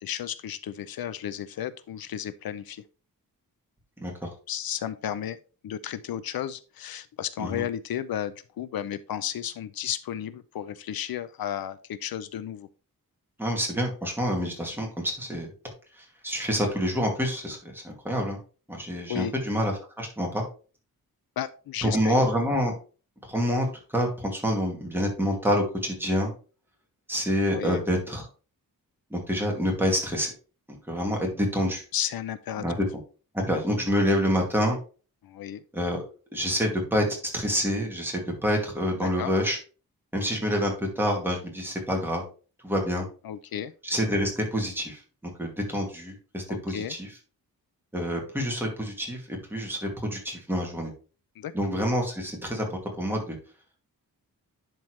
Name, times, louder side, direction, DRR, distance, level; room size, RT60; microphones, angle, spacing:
voice 1, 0.0-2.8 4.5-5.4 5.6-12.7 19.1-19.3 21.4-22.2 27.5-27.8 31.9-32.6 35.2-35.6 39.0-39.3 43.2-43.7 46.5-47.0 51.4-51.5, left 10 dB, 80° left, 14 dB, 0.6 m, -33 dB
voice 2, 4.0-4.3 7.4-7.6 13.4-15.5 16.0-18.4 18.7-20.4 21.8-22.7 23.3-23.7 23.9-26.3 27.1-28.2 29.1-30.3 30.9-31.8 32.6-32.7 33.3-34.8 35.7-36.0 36.3-39.6 40.1-42.2 42.6-43.1 43.8-45.0 45.4-47.1 47.9-50.9 51.5-53.4, equal, 5° right, 0 dB, 2.3 m, -27 dB
10.5 x 4.5 x 3.2 m, 0.37 s
wide cardioid pair, 145°, 35 cm